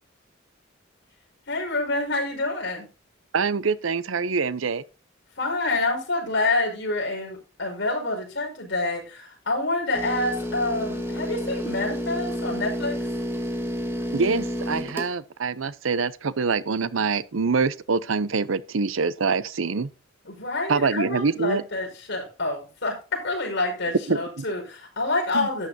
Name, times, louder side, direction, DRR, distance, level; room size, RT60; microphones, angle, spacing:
voice 1, 1.5-2.9 5.4-13.0 20.2-25.7, left 2 dB, 60° left, 5.2 m, -27 dB
voice 2, 3.3-4.8 14.1-19.9 20.7-21.6 24.1-24.2 25.3-25.5, right 4 dB, 85° right, 0.7 m, -25 dB
sound 1, 9.9-15.1, equal, 15° right, 1.8 m, -30 dB
12.5 x 9.3 x 2.8 m
head